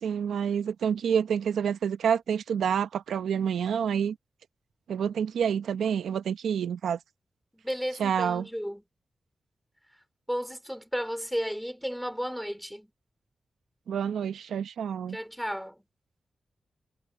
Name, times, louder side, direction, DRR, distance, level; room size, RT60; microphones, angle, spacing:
voice 1, 0.0-4.2 4.9-7.0 8.0-8.5 13.9-15.2, right 8 dB, 85° right, 0.8 m, -28 dB
voice 2, 7.5-8.8 10.3-12.9 15.1-15.8, equal, ahead, 4.5 m, -33 dB
supercardioid pair, 40°, 0 cm